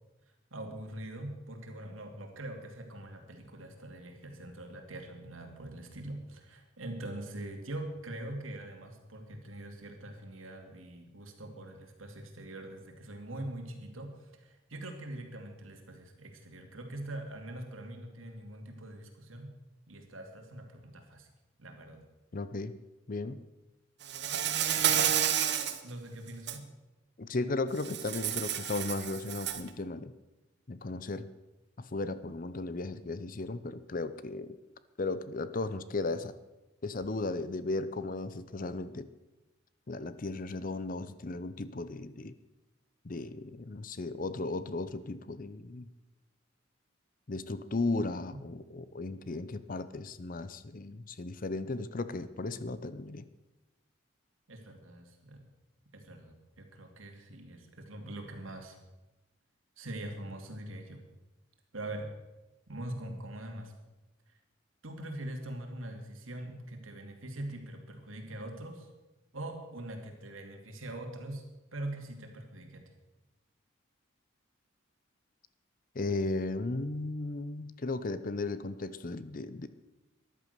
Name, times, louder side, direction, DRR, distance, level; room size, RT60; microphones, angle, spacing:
voice 1, 0.5-19.5 19.9-21.3 21.6-22.0 24.8-25.1 25.8-26.7 54.5-55.4 55.9-58.8 59.8-61.0 61.7-62.1 62.7-63.7 64.8-68.9 69.3-71.4 71.7-72.9, right 1 dB, 90° right, 3 dB, 2.6 m, -43 dB
voice 2, 22.3-22.8 23.1-23.4 27.2-30.1 30.7-31.3 31.8-34.5 35.0-36.3 36.8-39.1 39.9-42.4 43.0-45.9 47.3-53.2 75.9-79.7, left 3 dB, 45° left, 14 dB, 0.6 m, -35 dB
Insect, 24.1-25.8 26.3-26.6 27.8-29.7, right 9 dB, 55° right, 1.1 m, -30 dB
14.0 x 11.0 x 6.7 m, 1.0 s
head